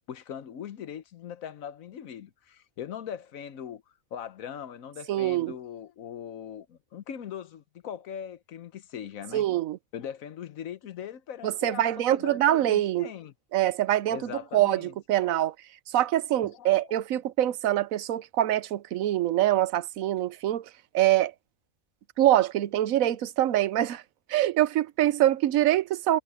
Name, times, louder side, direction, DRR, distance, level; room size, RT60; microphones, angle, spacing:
voice 1, 0.1-3.8 4.1-9.4 9.9-13.3 14.1-14.9 15.2-15.4 16.5-16.9, left 9 dB, 80° left, 1.3 m, -40 dB
voice 2, 5.1-5.6 9.3-9.8 11.4-13.1 13.5-15.5 15.9-21.3 22.2-24.0 24.3-26.2, right 13 dB, 85° right, 1.1 m, -24 dB
omnidirectional pair, 1.4 m